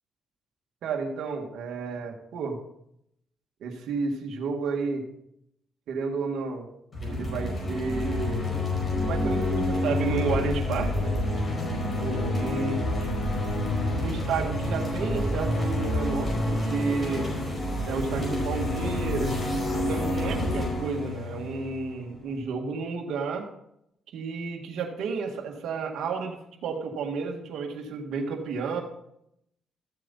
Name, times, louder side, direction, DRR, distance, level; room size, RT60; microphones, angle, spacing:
voice 1, 0.8-2.6 3.6-5.0 5.9-6.7 7.0-8.5 9.1-11.2 12.0-13.1 14.0-17.3 17.9-19.4 19.7-23.5 24.1-28.8, right 4 dB, 80° right, 1 dB, 1.8 m, -31 dB
sound 1, 6.9-22.3, left 1 dB, 35° left, 5.0 m, -28 dB
13.5 x 7.6 x 4.1 m, 0.76 s
cardioid pair, 90°, 0 cm